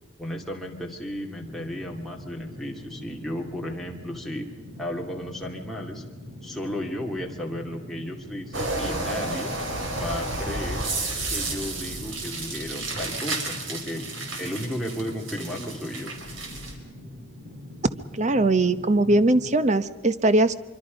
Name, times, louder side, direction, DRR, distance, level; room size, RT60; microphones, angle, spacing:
voice 1, 0.2-4.5 4.8-6.0 6.4-9.5 9.9-10.9 11.3-14.0 14.4-16.1, left 1 dB, ahead, -2 dB, 2.4 m, -34 dB
sound 1, 1.4-19.5, left 1 dB, 50° right, 6.6 m, -43 dB
sound 2, 8.5-16.8, right 2 dB, 85° right, 4.2 m, -32 dB
voice 2, 18.1-20.5, right 2 dB, 35° right, 13 dB, 0.8 m, -20 dB
25.0 x 25.0 x 5.2 m, 1.4 s
head